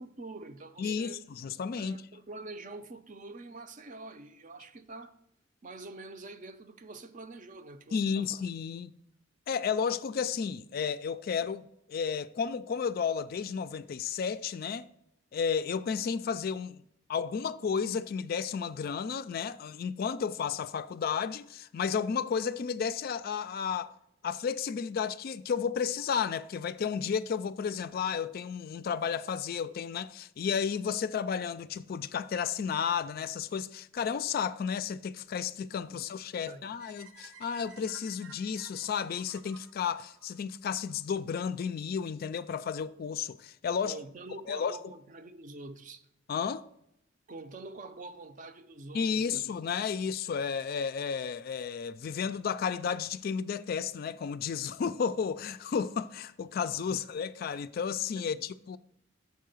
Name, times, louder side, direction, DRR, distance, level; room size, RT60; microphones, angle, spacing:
voice 1, 0.0-1.2 1.8-5.2 5.6-8.4 35.9-36.0 36.3-36.7 43.8-46.1 47.3-49.4 56.9-57.0 58.1-58.4, right 2 dB, 40° right, 0.5 m, -46 dB
voice 2, 0.8-2.0 7.9-8.9 9.5-14.9 15.3-16.8 17.1-23.9 24.2-44.0 44.5-44.8 46.3-46.7 48.9-58.8, left 6 dB, 50° left, 0.3 m, -32 dB
sound 1, 36.8-40.9, right 4 dB, 80° right, 0.8 m, -54 dB
6.7 x 4.6 x 6.4 m
head